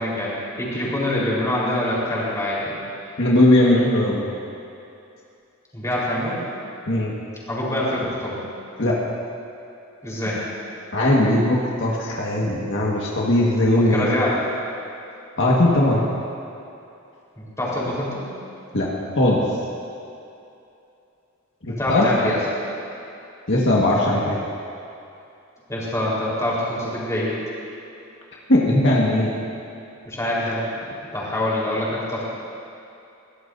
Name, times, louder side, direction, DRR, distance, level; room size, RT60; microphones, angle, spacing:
voice 1, 0.0-2.8 5.7-6.4 7.5-8.4 10.0-10.4 13.7-14.4 17.4-18.2 21.8-22.4 25.7-27.3 30.0-30.7 31.1-32.2, left 1 dB, 15° left, -7 dB, 4.2 m, -25 dB
voice 2, 3.2-4.2 6.9-7.1 8.8-9.0 10.9-14.1 15.4-16.1 18.7-18.9 19.2-19.4 21.6-22.1 23.5-24.4 28.5-29.3, left 1 dB, 65° left, -4 dB, 1.7 m, -19 dB
22.0 x 17.0 x 2.7 m, 2.7 s
head